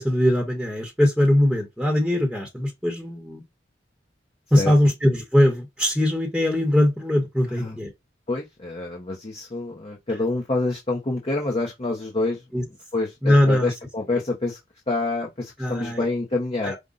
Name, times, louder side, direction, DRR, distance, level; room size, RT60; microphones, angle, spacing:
voice 1, 0.0-3.4 4.5-7.9 12.5-12.6 13.2-13.7 14.1-14.2 15.6-16.1 16.6-16.8, left 1 dB, ahead, 0.9 m, -21 dB
voice 2, 8.3-12.4 12.9-14.6 14.9-16.7, left 2 dB, 30° left, 0.7 m, -27 dB
5.1 x 2.2 x 3.8 m
head